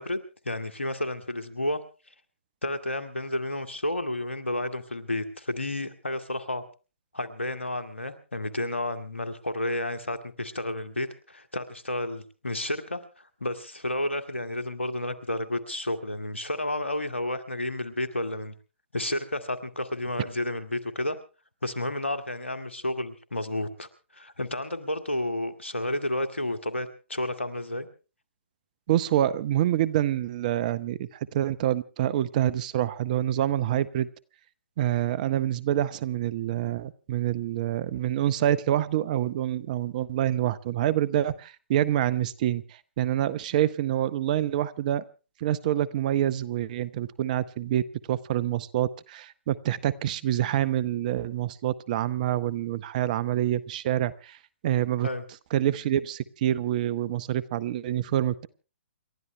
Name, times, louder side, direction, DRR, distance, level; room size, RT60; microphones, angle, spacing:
voice 1, 0.0-1.8 2.6-6.6 7.1-18.5 18.9-21.2 21.6-27.9 55.0-55.2, left 1 dB, 85° left, 9 dB, 1.9 m, -31 dB
voice 2, 28.9-34.1 34.8-45.0 45.4-47.8 48.1-54.4 54.6-55.1 55.5-58.5, right 12 dB, 40° right, 18 dB, 0.9 m, -26 dB
29.0 x 12.5 x 3.3 m, 0.34 s
figure-of-eight pair, 130°, 6 cm